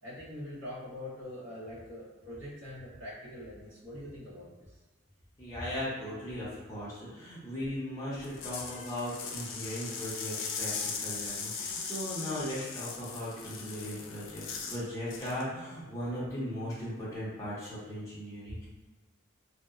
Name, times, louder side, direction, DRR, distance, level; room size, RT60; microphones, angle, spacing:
voice 1, 0.0-4.8, left 1 dB, 70° right, -10 dB, 0.9 m, -43 dB
voice 2, 5.4-18.7, equal, 15° left, -9 dB, 0.6 m, -38 dB
sound 1, 8.2-14.8 15.1-15.4, left 5 dB, 65° left, 0.3 m, -39 dB
2.7 x 2.0 x 2.4 m, 1.2 s
head